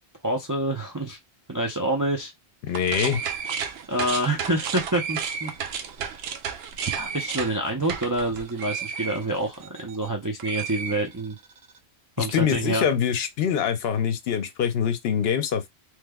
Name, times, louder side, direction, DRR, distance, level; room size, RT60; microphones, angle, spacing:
voice 1, 0.2-1.2 1.5-2.3 3.9-5.8 6.9-11.4 12.2-12.8, right 1 dB, 30° right, 0.3 m, -27 dB
voice 2, 2.6-3.2 12.2-15.7, left 8 dB, 70° left, 0.8 m, -24 dB
sound 1, 2.7-10.1 10.4-11.6, right 7 dB, 75° right, 0.8 m, -33 dB
3.1 x 2.0 x 3.4 m
omnidirectional pair, 1.1 m